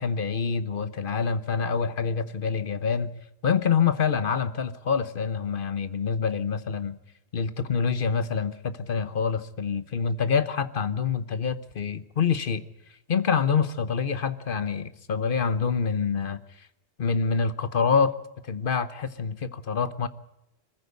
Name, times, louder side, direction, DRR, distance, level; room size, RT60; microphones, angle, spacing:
voice 1, 0.0-3.1 3.4-7.0 7.3-12.6 13.1-16.7 17.0-18.1 18.5-20.1, left 6 dB, 55° left, 13 dB, 1.1 m, -26 dB
22.0 x 15.0 x 8.2 m, 0.85 s
omnidirectional pair, 1.1 m